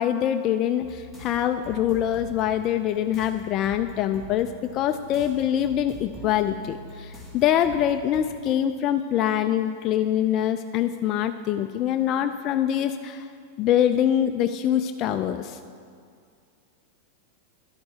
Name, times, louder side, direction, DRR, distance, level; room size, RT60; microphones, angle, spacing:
voice 1, 0.0-13.3 13.6-15.6, left 10 dB, 35° left, 7 dB, 0.3 m, -24 dB
sound 1, 0.8-8.2, left 1 dB, 15° right, 2.2 m, -44 dB
11.5 x 10.5 x 2.8 m, 2.2 s
supercardioid pair, 140°, 0 cm